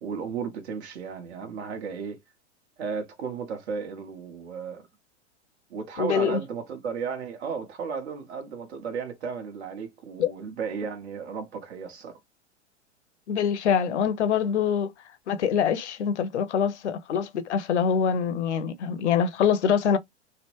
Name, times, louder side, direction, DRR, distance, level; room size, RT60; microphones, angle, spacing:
voice 1, 0.0-2.2 2.8-4.8 5.7-12.2, right 6 dB, 65° right, 1.2 m, -34 dB
voice 2, 6.0-6.4 10.2-10.3 13.3-14.9 15.3-20.0, left 7 dB, 70° left, 0.7 m, -24 dB
3.4 x 2.1 x 3.1 m
figure-of-eight pair, 100°, 36 cm